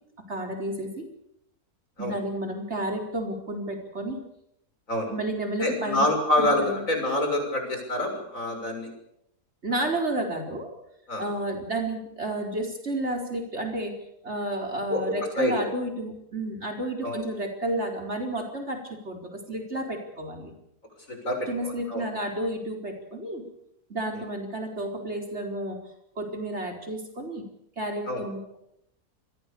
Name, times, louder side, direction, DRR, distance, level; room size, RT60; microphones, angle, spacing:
voice 1, 0.3-1.0 2.0-4.2 5.1-6.1 6.4-6.8 9.6-10.7 11.2-13.9 14.2-20.6 21.5-23.4 23.9-25.8 26.2-27.4 27.8-28.6, right 1 dB, 45° right, 2 dB, 4.7 m, -31 dB
voice 2, 5.6-8.9 11.1-11.2 14.9-15.5 17.0-17.2 21.1-22.0 28.1-28.2, left 1 dB, 55° left, 4 dB, 6.9 m, -27 dB
28.5 x 22.0 x 7.0 m, 0.79 s
omnidirectional pair, 1.7 m